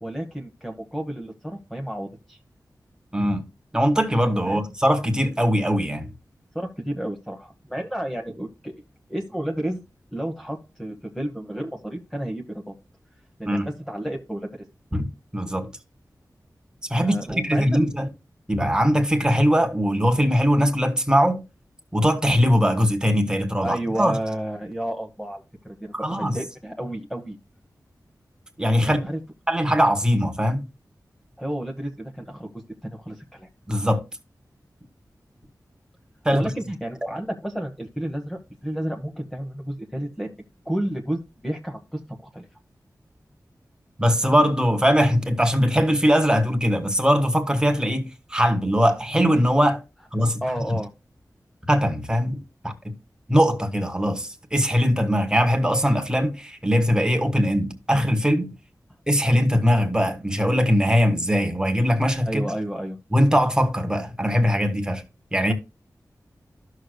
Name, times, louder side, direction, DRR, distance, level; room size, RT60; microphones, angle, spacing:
voice 1, 0.0-2.4 4.4-4.6 6.5-8.8 9.1-9.8 10.1-12.7 13.4-14.7 17.0-17.8 23.6-27.4 28.8-29.2 31.4-32.5 32.8-33.5 36.3-40.3 40.6-42.5 50.4-50.9 62.2-63.0, right 1 dB, 5° left, 1.1 m, -31 dB
voice 2, 3.1-3.4 3.7-6.1 13.5-13.7 14.9-15.1 15.3-15.7 16.9-18.1 18.5-21.4 21.9-24.1 25.9-26.4 28.6-29.0 29.5-30.6 33.7-34.0 36.2-36.5 44.0-49.8 50.1-50.4 51.7-52.9 53.3-58.5 59.1-62.4 63.1-65.0 65.3-65.5, equal, 10° right, 1.6 m, -21 dB
13.0 x 6.6 x 2.2 m
wide cardioid pair, 85°, 7 cm